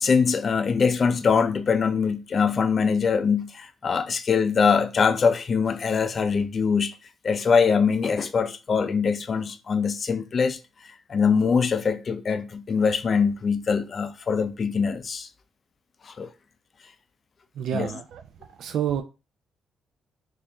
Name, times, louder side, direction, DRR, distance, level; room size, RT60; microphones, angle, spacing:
voice 1, 0.0-6.9 7.2-10.6 11.1-15.3 16.0-16.3 17.7-17.9, left 5 dB, 45° left, 0.5 m, -23 dB
voice 2, 17.6-18.2 18.6-19.0, right 9 dB, 75° right, 0.3 m, -28 dB
4.2 x 2.5 x 2.8 m
cardioid pair, 85°, 0 cm